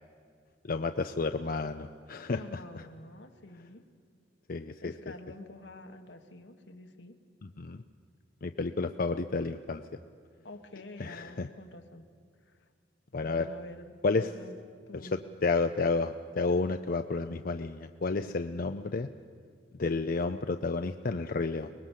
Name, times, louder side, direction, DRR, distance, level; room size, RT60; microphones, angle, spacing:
voice 1, 0.6-2.8 4.5-4.9 7.6-7.8 8.4-9.8 11.0-11.5 13.1-13.5 14.0-14.3 15.1-19.1 19.8-21.7, left 3 dB, 55° left, 8 dB, 0.6 m, -31 dB
voice 2, 2.3-3.8 4.8-7.2 10.4-12.1 12.5-12.6 13.2-14.5 14.9-15.2, left 1 dB, 80° left, 6 dB, 1.7 m, -48 dB
24.0 x 20.0 x 7.4 m, 2.2 s
head